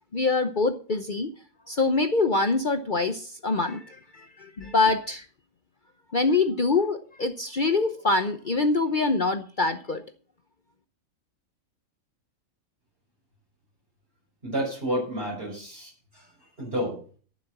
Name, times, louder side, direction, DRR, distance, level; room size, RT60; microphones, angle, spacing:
voice 1, 0.1-1.3 1.7-5.2 6.1-10.0, left 3 dB, 40° left, 8 dB, 0.9 m, -25 dB
voice 2, 14.4-16.2 16.6-17.0, equal, 45° right, -3 dB, 6.3 m, -30 dB
12.0 x 7.5 x 7.3 m, 0.41 s
omnidirectional pair, 1.4 m